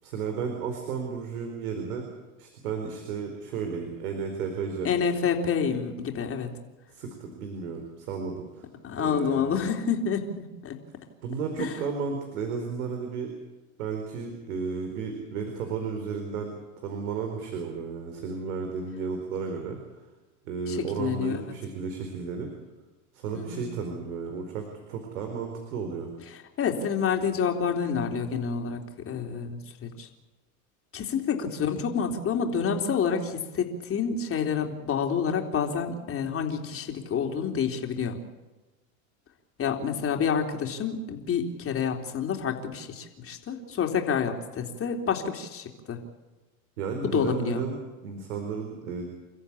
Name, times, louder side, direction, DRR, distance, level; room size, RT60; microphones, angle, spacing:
voice 1, 0.0-2.1 2.4-4.9 6.9-8.7 9.0-9.6 11.2-13.3 13.8-19.8 20.4-22.5 23.1-26.1 46.8-49.1, right 5 dB, 75° right, 4 dB, 4.6 m, -33 dB
voice 2, 4.8-6.5 8.8-10.8 11.6-11.7 20.7-21.4 23.3-23.6 26.6-30.1 30.9-38.2 39.6-46.0 47.0-47.6, left 6 dB, 30° left, 3 dB, 3.7 m, -28 dB
29.0 x 14.5 x 8.7 m, 1.2 s
hypercardioid pair, 110°, 43 cm